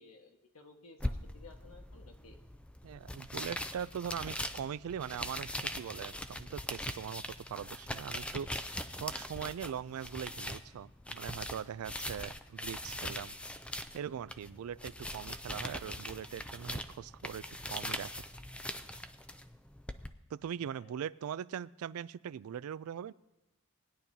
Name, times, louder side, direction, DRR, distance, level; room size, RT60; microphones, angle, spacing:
voice 1, 0.0-2.4 20.8-21.0, left 3 dB, 85° left, 4 dB, 1.4 m, -56 dB
sound 1, 1.0-20.1, left 1 dB, 5° left, 0.4 m, -41 dB
voice 2, 2.8-13.3 13.9-17.4 17.7-18.1 20.3-23.1, right 8 dB, 80° right, 18 dB, 0.3 m, -41 dB
19.5 x 10.5 x 2.8 m, 1.0 s
head